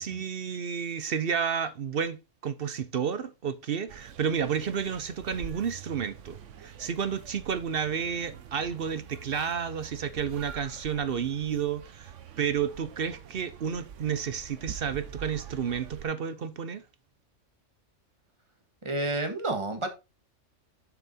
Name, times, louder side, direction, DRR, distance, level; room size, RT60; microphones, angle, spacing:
voice 1, 0.0-16.8, right 7 dB, 55° right, 0.8 m, -31 dB
sound 1, 3.9-16.0, right 9 dB, 75° right, 1.1 m, -45 dB
voice 2, 18.8-19.9, right 2 dB, 25° right, 1.6 m, -29 dB
7.2 x 6.1 x 4.2 m
omnidirectional pair, 1.3 m